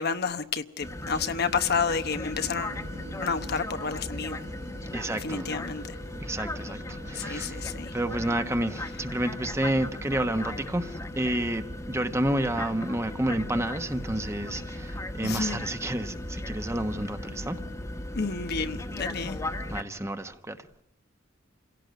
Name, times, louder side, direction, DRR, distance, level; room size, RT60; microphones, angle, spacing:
voice 1, 0.0-2.8 3.2-4.4 5.2-6.0 7.1-7.9 15.2-15.6 18.1-19.4, left 5 dB, 50° left, 1.0 m, -30 dB
sound 1, 0.8-19.8, left 1 dB, 15° left, 1.3 m, -37 dB
sound 2, 2.3-7.8, right 1 dB, 65° right, 2.5 m, -46 dB
voice 2, 4.9-5.5 6.2-7.7 7.9-17.6 19.7-20.7, right 1 dB, 15° right, 1.2 m, -30 dB
27.0 x 17.0 x 9.3 m
head